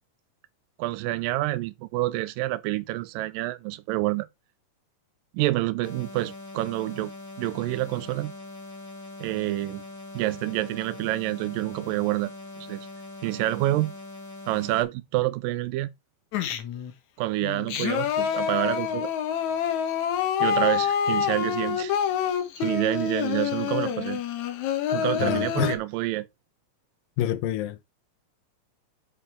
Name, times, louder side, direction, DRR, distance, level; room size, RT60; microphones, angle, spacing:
voice 1, 0.8-4.3 5.3-7.1 7.4-8.3 9.2-9.8 10.1-12.3 12.6-12.8 13.2-13.9 14.5-15.9 17.2-19.1 20.4-21.9 22.6-24.2 24.9-26.3, right 17 dB, 85° right, 2.3 m, -28 dB
sound 1, 5.8-14.8, left 2 dB, 10° left, 1.2 m, -42 dB
Singing, 16.3-16.9 17.4-25.8, left 8 dB, 65° left, 2.4 m, -27 dB
voice 2, 25.2-25.8 27.2-27.8, left 12 dB, 80° left, 2.6 m, -27 dB
8.6 x 6.7 x 3.6 m
omnidirectional pair, 4.0 m